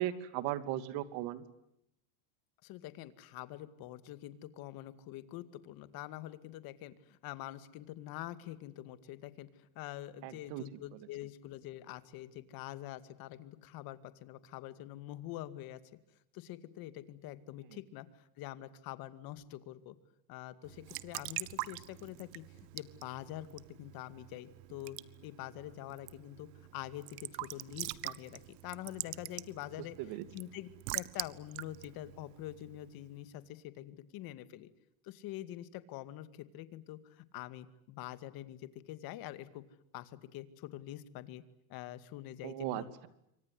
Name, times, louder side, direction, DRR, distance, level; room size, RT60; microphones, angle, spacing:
voice 1, 0.0-1.4 10.2-10.6 10.9-11.0 17.7-17.8 30.0-30.2 42.4-43.1, right 13 dB, 55° right, 12 dB, 2.9 m, -37 dB
voice 2, 2.6-15.8 16.3-20.0 20.3-22.4 22.7-25.0 25.2-30.0 30.3-30.7 30.9-34.7 35.0-39.6 39.9-41.4 41.7-42.9, left 14 dB, 50° left, 12 dB, 2.3 m, -45 dB
Raindrop / Drip / Trickle dribble, 20.6-33.1, right 19 dB, 85° right, 1.3 m, -45 dB
27.5 x 25.0 x 7.9 m, 0.80 s
supercardioid pair, 155°, 47 cm